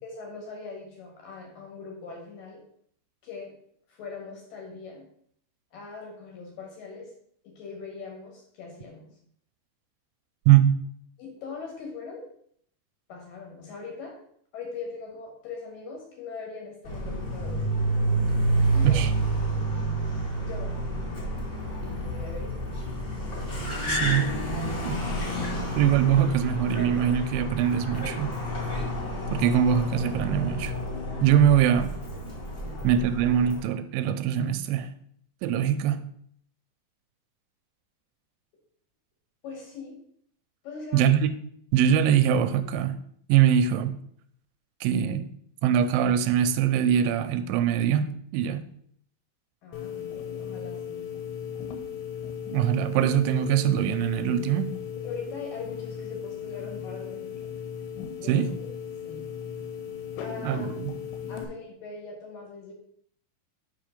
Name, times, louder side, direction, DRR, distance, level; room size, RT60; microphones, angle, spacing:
voice 1, 0.0-2.6 3.2-3.5 3.9-5.0 5.7-7.1 7.4-9.1 11.2-12.2 13.1-14.1 14.5-17.6 18.7-19.1 20.4-20.9 21.8-22.6 32.6-32.8 39.4-40.0 40.6-41.1 49.6-51.1 55.0-57.5 58.2-58.5 59.0-59.2 60.2-60.7 61.3-62.7, left 4 dB, 60° left, -1 dB, 2.7 m, -41 dB
Car, 16.8-33.6, right 1 dB, 35° left, 2.1 m, -29 dB
voice 2, 23.9-24.3 24.9-25.0 25.8-28.3 29.3-30.7 31.2-31.9 32.8-34.9 35.4-36.1 40.9-41.3 41.7-43.0 43.3-43.9 44.8-45.3 45.6-48.6 52.5-54.7 58.3-58.5 60.4-60.9, right 9 dB, 85° right, 11 dB, 2.9 m, -22 dB
sound 1, 49.7-61.4, left 8 dB, 80° left, 3.1 m, -37 dB
6.3 x 5.7 x 5.1 m, 0.65 s
omnidirectional pair, 5.2 m